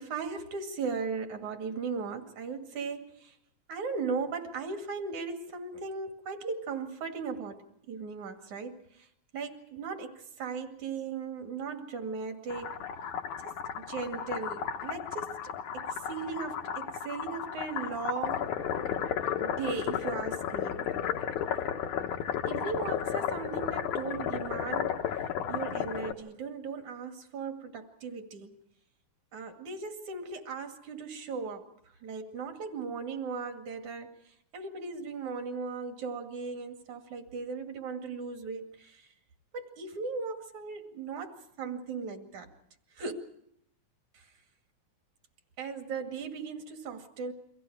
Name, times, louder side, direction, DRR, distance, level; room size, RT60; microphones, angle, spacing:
voice 1, 0.0-3.4 3.7-9.1 9.3-12.7 13.4-18.5 19.4-21.0 22.4-25.0 25.5-28.6 29.3-31.7 32.0-39.1 39.5-42.5 43.0-43.1 44.1-44.3 45.6-47.3, right 5 dB, 75° right, 5 dB, 3.6 m, -37 dB
sound 1, 12.5-26.1, left 9 dB, 85° left, 2.7 m, -33 dB
30.0 x 24.0 x 4.9 m, 0.72 s
omnidirectional pair, 3.4 m